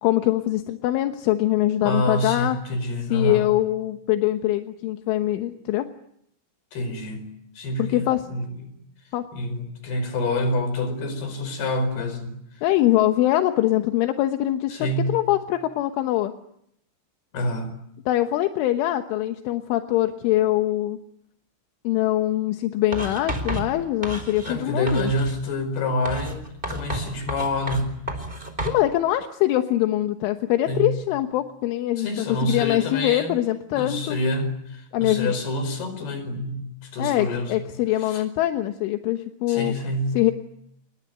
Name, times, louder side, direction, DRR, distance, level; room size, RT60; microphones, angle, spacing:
voice 1, 0.0-2.6 3.1-5.9 7.8-8.3 9.1-9.3 12.6-14.8 15.1-16.3 18.1-21.0 21.9-25.1 28.7-34.2 34.9-35.3 37.0-39.7 40.2-40.3, left 14 dB, 80° left, 7 dB, 3.7 m, -23 dB
voice 2, 1.8-3.5 6.7-8.7 9.3-12.6 14.7-15.2 17.3-17.7 24.5-26.4 26.7-27.9 30.7-30.9 32.0-33.4 33.7-37.7 38.0-38.2 39.5-40.1, left 1 dB, 55° left, 10 dB, 6.6 m, -27 dB
Writing, 22.9-24.6 24.9-25.4 26.0-28.8, right 1 dB, 10° right, 4.0 m, -31 dB
29.5 x 22.0 x 9.3 m, 0.75 s
omnidirectional pair, 5.5 m